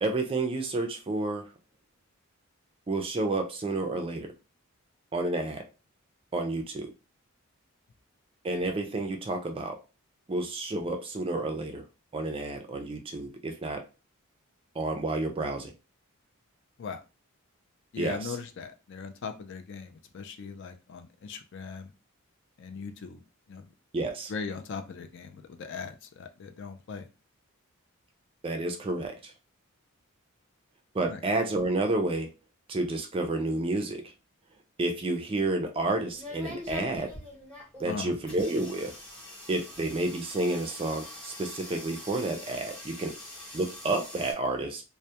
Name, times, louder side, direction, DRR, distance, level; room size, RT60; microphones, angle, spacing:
voice 1, 0.0-1.5 2.9-4.3 5.1-5.7 6.3-6.9 8.4-9.8 10.3-11.8 12.1-13.8 14.8-15.7 18.0-18.3 23.9-24.3 28.4-29.3 30.9-32.3 32.7-34.0 34.8-37.1 37.8-38.9 39.5-43.2 43.5-44.8, right 2 dB, 25° right, 0.3 m, -30 dB
voice 2, 17.9-21.9 22.6-23.2 23.5-23.7 24.3-27.1 31.1-31.2 37.8-38.2, left 5 dB, 55° left, 0.3 m, -39 dB
sound 1, 35.6-44.3, left 1 dB, 5° left, 0.7 m, -44 dB
2.2 x 2.0 x 2.7 m
head